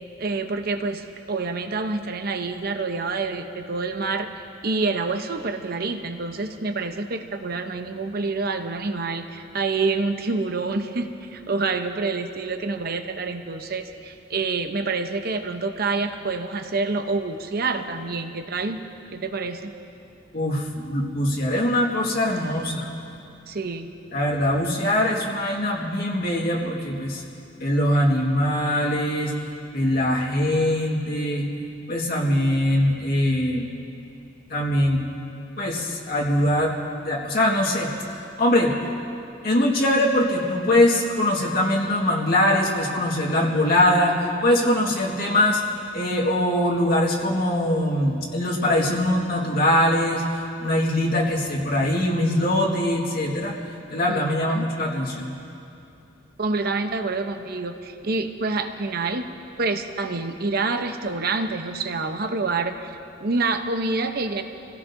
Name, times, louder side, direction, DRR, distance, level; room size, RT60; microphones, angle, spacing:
voice 1, 0.2-4.3 4.6-18.8 19.1-19.7 23.5-23.9 45.1-45.4 54.1-54.7 56.4-59.3 59.6-64.4, right 3 dB, 55° right, 7 dB, 0.8 m, -27 dB
voice 2, 20.3-22.9 24.1-27.2 27.6-29.3 29.7-31.5 31.9-33.7 34.5-35.0 35.6-36.7 37.0-37.9 38.4-38.7 39.4-45.6 45.9-50.3 50.6-53.5 53.9-55.3, left 1 dB, 55° left, -4 dB, 1.9 m, -22 dB
27.5 x 17.0 x 2.7 m, 2.7 s
head